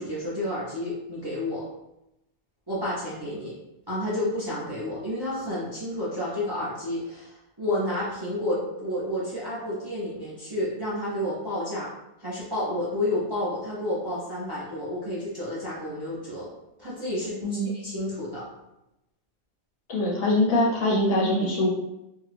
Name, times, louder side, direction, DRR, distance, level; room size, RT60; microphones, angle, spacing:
voice 1, 0.0-1.7 2.7-3.6 3.9-11.9 12.2-16.5 16.8-17.4 17.8-18.5, left 1 dB, 30° right, -8 dB, 0.5 m, -30 dB
voice 2, 19.9-21.7, left 1 dB, 55° left, -4 dB, 0.9 m, -23 dB
2.6 x 2.3 x 3.3 m, 0.88 s
omnidirectional pair, 1.4 m